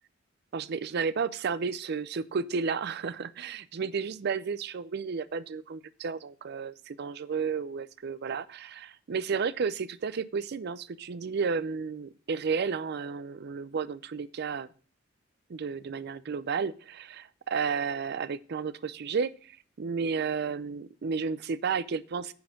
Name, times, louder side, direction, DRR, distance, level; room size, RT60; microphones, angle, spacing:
voice 1, 0.5-14.7 15.5-22.3, right 5 dB, 55° right, 16 dB, 0.4 m, -32 dB
9.5 x 4.4 x 5.7 m, 0.41 s
head